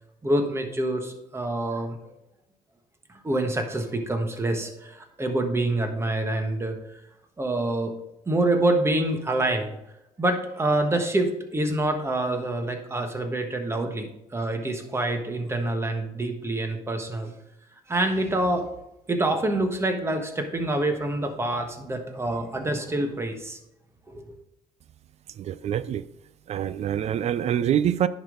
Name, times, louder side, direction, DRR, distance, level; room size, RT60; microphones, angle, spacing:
voice 1, 0.2-2.0 3.2-6.8 7.4-7.9 8.3-9.8 10.2-17.3 17.9-18.7 19.1-23.6 24.1-24.4, right 1 dB, 20° right, 5 dB, 1.4 m, -26 dB
voice 2, 25.4-26.0 26.5-28.1, right 10 dB, 50° right, 16 dB, 0.4 m, -25 dB
10.5 x 5.3 x 3.9 m, 0.87 s
cardioid pair, 105°, 14 cm